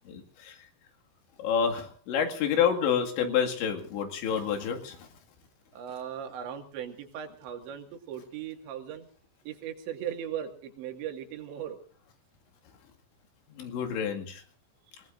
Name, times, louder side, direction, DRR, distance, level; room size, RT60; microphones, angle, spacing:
voice 1, 0.1-0.7 1.4-5.1 13.5-14.4, left 7 dB, 85° left, 3 dB, 4.5 m, -28 dB
voice 2, 5.7-9.1 9.5-11.8, right 9 dB, 80° right, 4 dB, 4.4 m, -38 dB
29.5 x 18.0 x 2.6 m, 0.38 s
omnidirectional pair, 5.1 m